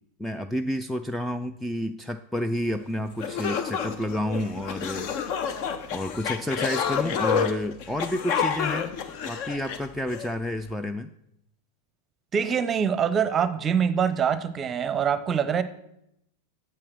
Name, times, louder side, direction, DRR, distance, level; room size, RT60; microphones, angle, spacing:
voice 1, 0.2-5.1 5.9-8.9 9.3-11.1, left 1 dB, ahead, 9 dB, 0.4 m, -30 dB
sound 1, 2.8-2.9 3.2-10.3, left 7 dB, 45° left, 0.8 m, -29 dB
voice 2, 12.3-15.6, right 7 dB, 25° right, 14 dB, 0.7 m, -24 dB
8.8 x 6.7 x 6.0 m, 0.79 s
figure-of-eight pair, 90°, 0 cm